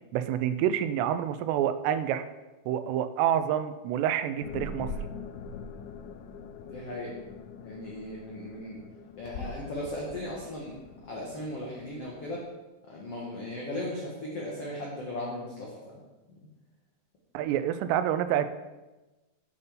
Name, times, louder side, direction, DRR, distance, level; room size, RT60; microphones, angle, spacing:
voice 1, 0.1-2.2 2.7-4.9 17.3-18.5, right 10 dB, 90° right, 12 dB, 2.7 m, -27 dB
sound 1, 4.4-12.4, left 3 dB, 85° left, 2.2 m, -43 dB
voice 2, 6.6-7.1 7.6-8.8 9.2-12.4 12.9-16.0, left 1 dB, 60° left, -3 dB, 1.6 m, -37 dB
8.4 x 5.3 x 6.9 m, 1.1 s
omnidirectional pair, 4.8 m